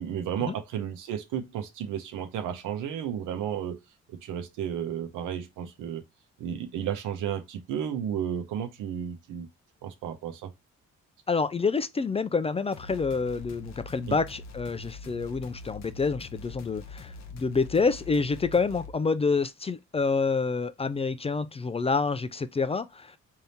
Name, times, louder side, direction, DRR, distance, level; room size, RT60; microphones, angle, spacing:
voice 1, 0.0-3.8 4.1-6.0 6.4-9.5 9.8-10.5 14.1-14.2, right 9 dB, 90° right, 0.9 m, -33 dB
voice 2, 11.3-23.2, left 4 dB, 20° left, 0.3 m, -28 dB
sound 1, 12.7-18.9, left 3 dB, 65° left, 0.8 m, -44 dB
3.5 x 2.7 x 4.1 m
cardioid pair, 90°, 30 cm